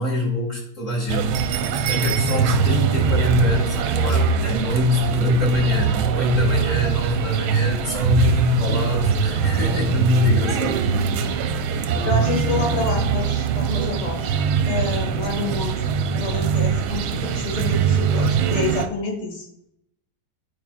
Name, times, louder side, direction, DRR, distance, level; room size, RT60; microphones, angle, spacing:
voice 1, 0.0-1.4 1.8-10.8 11.1-11.2, left 2 dB, 40° left, -3 dB, 2.7 m, -23 dB
sound 1, 1.1-18.9, right 6 dB, 90° right, 1.4 m, -22 dB
voice 2, 12.0-14.3 14.7-19.5, left 3 dB, 85° left, 2 dB, 2.6 m, -28 dB
9.3 x 4.8 x 2.3 m, 0.75 s
omnidirectional pair, 2.2 m